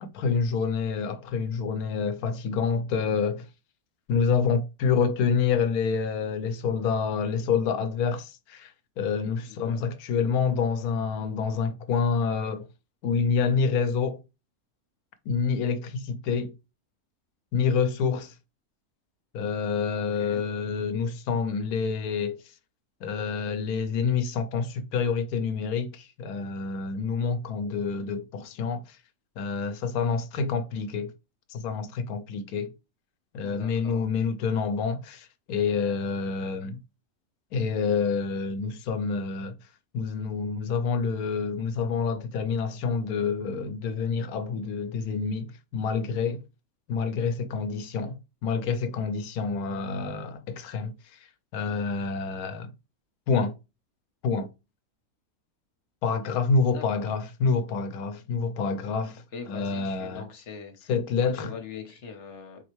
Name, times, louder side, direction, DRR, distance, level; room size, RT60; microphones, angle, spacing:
voice 1, 0.0-3.4 4.1-12.7 13.0-14.2 15.3-16.5 17.5-18.3 19.3-22.4 23.0-29.0 29.4-31.1 31.5-32.7 33.3-36.8 37.5-39.6 39.9-46.4 46.9-50.9 51.5-52.7 53.3-53.5 54.2-54.5 56.0-60.3 60.9-61.5, left 5 dB, 80° left, 1.1 m, -27 dB
voice 2, 9.4-9.9 19.9-20.4 33.4-34.2 56.6-57.0 59.3-60.9 61.2-62.6, left 6 dB, 55° left, 1.3 m, -42 dB
4.4 x 3.1 x 3.1 m
omnidirectional pair, 1.6 m